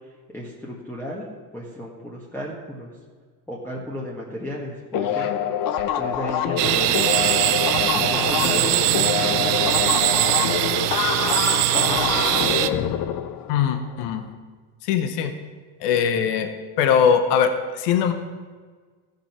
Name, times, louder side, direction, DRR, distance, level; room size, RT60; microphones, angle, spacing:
voice 1, 0.3-1.3 1.5-2.9 3.5-5.3 5.9-7.4 7.9-9.8 11.7-13.0, equal, 5° left, -5 dB, 1.7 m, -34 dB
sound 1, 4.9-14.1, left 10 dB, 45° left, 0.8 m, -25 dB
sound 2, 6.6-12.7, right 14 dB, 85° right, 0.7 m, -21 dB
voice 2, 13.5-14.3 14.8-15.3 15.8-16.5 16.8-18.1, left 7 dB, 80° left, 8 dB, 1.1 m, -21 dB
14.5 x 5.3 x 5.9 m, 1.5 s
supercardioid pair, 100°, 47 cm